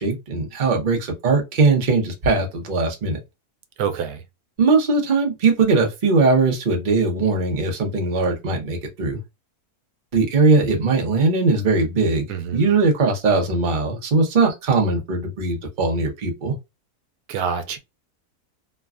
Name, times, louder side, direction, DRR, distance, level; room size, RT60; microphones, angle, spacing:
voice 1, 0.0-3.2 4.6-9.2 10.1-16.5, right 3 dB, 40° right, 0.8 m, -20 dB
voice 2, 3.8-4.2 12.3-12.7 17.3-17.8, right 7 dB, 90° right, 1.2 m, -26 dB
3.2 x 2.2 x 2.3 m
omnidirectional pair, 1.7 m